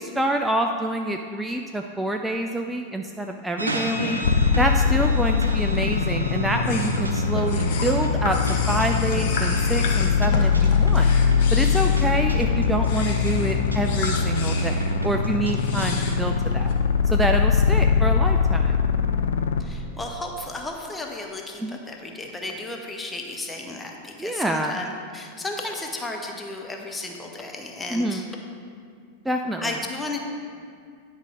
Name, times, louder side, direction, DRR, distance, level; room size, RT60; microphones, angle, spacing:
voice 1, 0.0-4.2 4.6-8.4 8.7-11.1 11.5-16.7 17.1-18.8 21.6-21.8 24.2-24.8 27.9-28.3 29.3-29.7, right 1 dB, 5° right, 3 dB, 0.3 m, -27 dB
sound 1, 3.6-16.2, right 1 dB, 80° right, 0.7 m, -34 dB
sound 2, 4.2-19.6, left 6 dB, 65° left, 0.4 m, -22 dB
sound 3, 4.7-16.7, left 3 dB, 50° left, 0.9 m, -33 dB
voice 2, 19.6-28.3 29.6-30.2, left 2 dB, 10° left, 2 dB, 0.8 m, -34 dB
10.0 x 5.2 x 3.7 m, 2.2 s
figure-of-eight pair, 90°, 0 cm